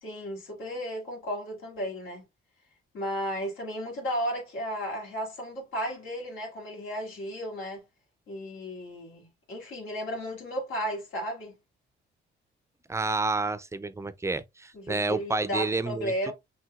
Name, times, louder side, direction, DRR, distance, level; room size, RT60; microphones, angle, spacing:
voice 1, 0.0-2.2 2.9-7.8 8.3-11.5 14.7-16.3, equal, 90° left, 2.2 m, -34 dB
voice 2, 12.9-16.3, right 3 dB, 15° right, 0.4 m, -30 dB
5.8 x 2.7 x 2.3 m
cardioid pair, 90°, 20 cm